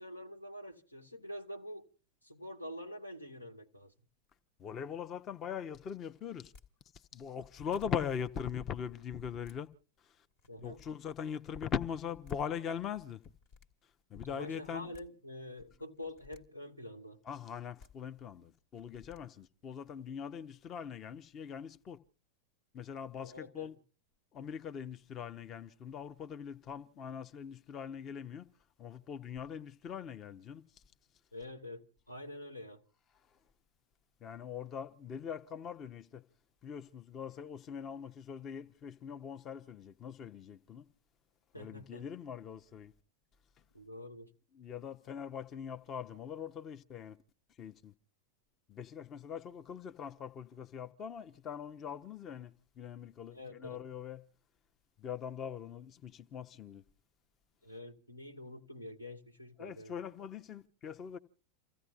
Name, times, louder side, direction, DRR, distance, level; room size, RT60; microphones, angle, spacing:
voice 1, 0.0-1.9 2.2-3.9 10.5-10.8 14.3-17.2 23.2-23.7 31.3-32.8 41.5-42.0 43.7-44.3 53.3-53.8 57.6-59.9, left 1 dB, 85° left, 1.4 m, -46 dB
voice 2, 4.6-6.5 6.9-9.7 10.0-10.3 10.6-13.2 13.8-14.9 17.2-22.0 22.7-23.8 24.3-28.5 28.8-30.8 33.3-33.4 34.2-36.3 36.6-40.9 41.5-42.9 44.5-47.2 47.6-47.9 48.7-54.3 55.0-56.8 59.6-61.2, left 8 dB, 30° left, 0.7 m, -42 dB
sound 1, 6.5-6.7 7.4-7.5 7.7-8.0 9.2-9.6 10.3-10.9 11.9-12.0 12.2-12.4 13.2-13.7 14.7-15.1 15.9-16.4 17.6-17.9 18.7-19.2, left 5 dB, 45° left, 1.5 m, -58 dB
29.0 x 15.5 x 2.5 m
figure-of-eight pair, 90°, 0 cm